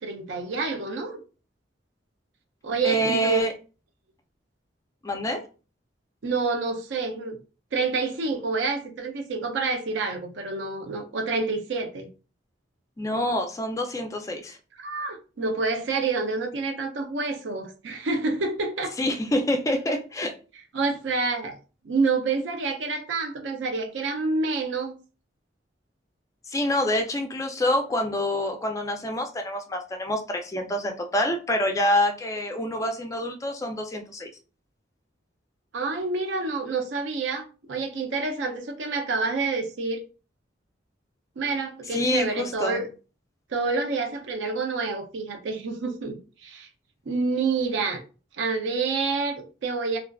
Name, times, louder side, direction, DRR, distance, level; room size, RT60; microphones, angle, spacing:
voice 1, 0.0-1.2 2.6-3.4 6.2-7.4 7.7-12.1 14.8-19.0 20.7-21.6 21.8-25.0 35.7-40.0 41.4-42.9 43.5-46.7 47.1-48.0 48.4-50.0, right 4 dB, 75° right, 0.5 m, -28 dB
voice 2, 2.8-3.5 5.0-5.4 13.0-14.6 19.0-20.3 26.5-34.3 41.9-42.8, left 1 dB, 15° left, 0.3 m, -26 dB
2.4 x 2.3 x 2.2 m
head